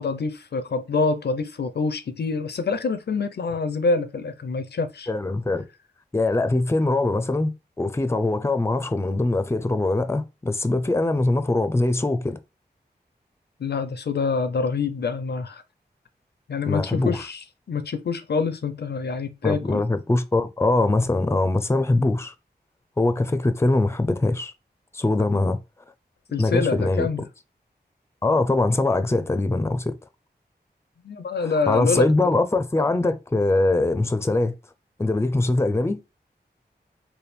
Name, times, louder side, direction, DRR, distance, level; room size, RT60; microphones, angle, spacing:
voice 1, 0.0-5.1 13.6-15.6 16.5-19.8 26.3-27.2 31.0-32.4 32.8-32.9, left 4 dB, 70° left, 0.5 m, -26 dB
voice 2, 5.1-5.6 6.1-12.4 16.7-17.2 19.4-22.3 23.0-24.5 24.9-25.6 26.4-27.1 28.2-29.9 31.4-34.5 35.0-36.0, left 2 dB, 15° left, 0.5 m, -22 dB
3.4 x 2.2 x 4.2 m
wide cardioid pair, 55°, 18 cm